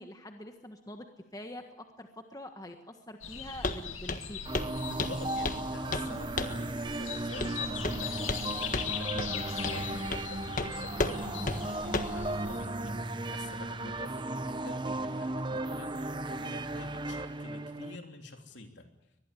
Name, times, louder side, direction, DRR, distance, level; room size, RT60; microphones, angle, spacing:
voice 1, 0.0-4.4, left 1 dB, 20° left, 5 dB, 1.5 m, -45 dB
sound 1, 3.2-12.7, left 6 dB, 90° left, 2.7 m, -41 dB
Walk footsteps, 3.6-3.8 4.1-4.3 4.5-4.7 5.0-5.6 5.9-6.1 6.4-6.6 7.4-7.6 7.8-8.5 8.7-8.9 9.2-9.3 9.6-9.8 10.1-10.3 10.6-10.7 11.0-11.2 11.5-11.6 11.9-12.2, left 2 dB, 40° left, 1.5 m, -32 dB
sound 2, 4.5-18.0, right 2 dB, 25° right, 0.9 m, -36 dB
voice 2, 4.8-18.8, left 2 dB, 65° left, 4 dB, 3.4 m, -47 dB
24.0 x 20.5 x 8.5 m, 0.89 s
head